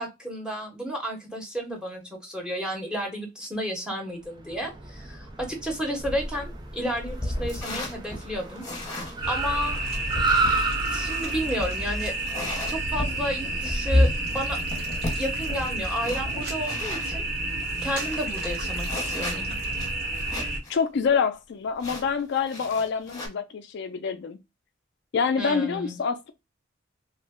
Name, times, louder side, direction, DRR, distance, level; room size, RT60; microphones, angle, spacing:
voice 1, 0.0-8.6 9.3-9.8 10.9-12.1 12.7-14.6 15.2-17.2 17.8-19.5 25.4-26.0, equal, 5° right, 1.0 m, -32 dB
Car, 4.3-13.9, right 3 dB, 25° right, 0.5 m, -32 dB
sound 1, 6.0-17.2 17.6-17.7 17.9-20.7 21.0-21.1 21.8-23.3, left 1 dB, 20° left, 1.1 m, -32 dB
sound 2, 9.2-20.6, right 2 dB, 55° right, 1.1 m, -30 dB
voice 2, 20.7-24.4 25.1-26.3, left 6 dB, 65° left, 0.4 m, -26 dB
3.1 x 2.0 x 3.5 m
head